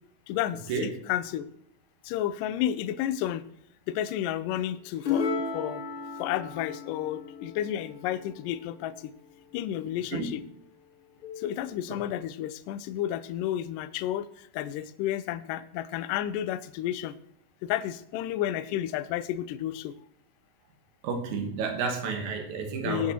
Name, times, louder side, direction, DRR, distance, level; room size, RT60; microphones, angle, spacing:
voice 1, 0.3-1.5 2.0-3.4 3.9-5.3 5.5-5.8 6.2-8.9 9.5-10.4 11.4-17.1 17.6-19.9 22.9-23.1, left 12 dB, 85° left, 13 dB, 1.9 m, -31 dB
sound 1, 5.0-8.7 11.2-11.7, left 5 dB, 45° left, 1.9 m, -34 dB
voice 2, 21.0-23.1, right 5 dB, 60° right, 3 dB, 2.5 m, -31 dB
18.0 x 6.3 x 3.0 m, 0.74 s
omnidirectional pair, 4.3 m